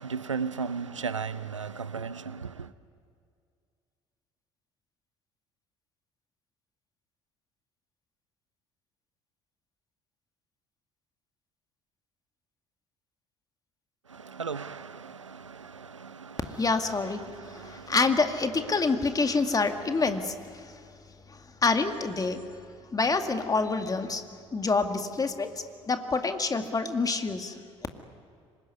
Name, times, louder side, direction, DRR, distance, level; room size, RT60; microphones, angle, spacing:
voice 1, 0.1-2.2 14.4-14.8, right 5 dB, 85° right, 0.6 m, -33 dB
voice 2, 16.6-20.8 21.3-22.5 22.9-24.2 24.5-25.5 25.9-27.6, left 4 dB, 25° left, 2.2 m, -27 dB
25.5 x 20.5 x 9.7 m
figure-of-eight pair, 55°, 15 cm